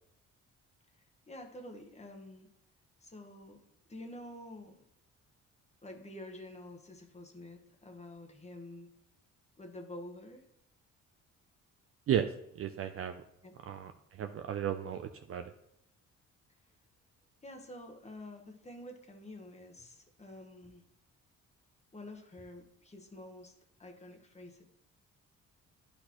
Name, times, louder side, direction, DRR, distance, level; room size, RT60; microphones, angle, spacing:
voice 1, 1.3-2.5 3.0-3.6 3.9-4.7 5.8-8.9 9.6-10.4 13.4-13.5 17.4-20.8 21.9-23.5 23.8-24.6, left 1 dB, 20° left, 3 dB, 1.1 m, -48 dB
voice 2, 12.6-13.2 13.7-15.5, right 10 dB, 50° right, 7 dB, 0.4 m, -34 dB
9.7 x 4.2 x 3.0 m, 0.77 s
cardioid pair, 90°, 30 cm